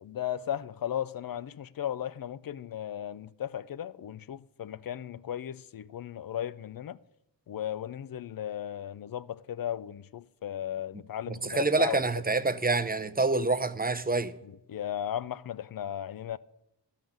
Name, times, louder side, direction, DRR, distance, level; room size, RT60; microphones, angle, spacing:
voice 1, 0.0-7.0 7.5-12.0 14.7-16.4, left 10 dB, 55° left, 0.5 m, -36 dB
voice 2, 11.3-14.3, right 3 dB, 20° right, 0.6 m, -27 dB
13.0 x 5.8 x 8.8 m
wide cardioid pair, 80°, 42 cm